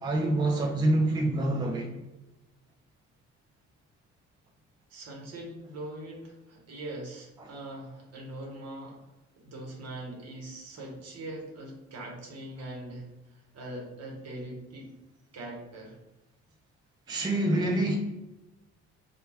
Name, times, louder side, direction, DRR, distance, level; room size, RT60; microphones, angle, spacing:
voice 1, 0.0-1.9 17.1-18.0, right 1 dB, 15° right, 0.4 m, -26 dB
voice 2, 4.9-9.0 9.4-14.9 15.3-16.0, right 1 dB, 60° right, 0.9 m, -42 dB
2.2 x 2.2 x 3.2 m
cardioid pair, 90°, 30 cm